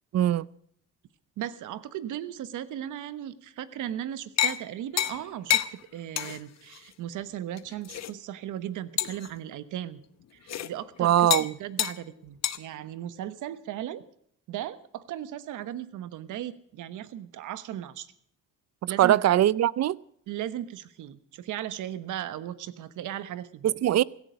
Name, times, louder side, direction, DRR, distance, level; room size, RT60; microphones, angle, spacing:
voice 1, 0.1-0.5 11.0-11.5 19.0-20.0 23.6-24.0, right 12 dB, 60° right, 0.6 m, -21 dB
voice 2, 1.4-10.0 10.3-11.3 11.6-14.0 14.5-18.1 18.9-19.2 20.3-23.7, right 11 dB, 80° right, 1.2 m, -37 dB
Eating slurping borscht soup at the festival, 4.4-4.6 5.0-5.2 5.5-5.7 6.2-6.4 6.7-6.8 7.6-8.1 9.0-9.3 10.5-10.7 11.3-11.5 11.8-12.0 12.4-12.6, left 11 dB, 60° left, 1.0 m, -27 dB
16.5 x 14.5 x 5.1 m
cardioid pair, 90°, 30 cm